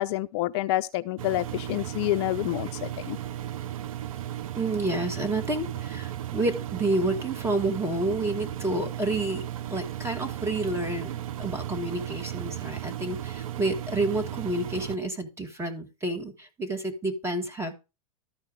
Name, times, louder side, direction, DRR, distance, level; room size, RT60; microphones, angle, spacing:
voice 1, 0.0-3.2, left 16 dB, 45° left, 0.4 m, -28 dB
Engine, 1.2-15.0, right 12 dB, 65° right, 0.6 m, -35 dB
voice 2, 4.6-9.4 9.7-17.7, right 2 dB, 15° right, 2.1 m, -29 dB
13.0 x 4.5 x 4.8 m
figure-of-eight pair, 95°, 19 cm